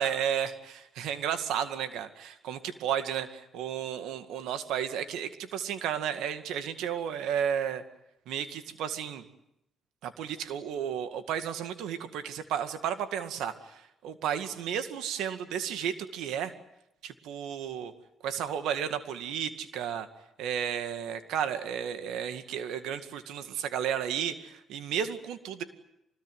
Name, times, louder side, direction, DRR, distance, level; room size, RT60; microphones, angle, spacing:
voice 1, 0.0-7.8 8.3-9.2 10.0-13.7 14.0-16.5 17.0-17.9 18.2-20.1 20.4-25.6, right 9 dB, 90° right, 9 dB, 2.0 m, -33 dB
25.0 x 20.5 x 9.3 m, 0.84 s
cardioid pair, 90°, 0 cm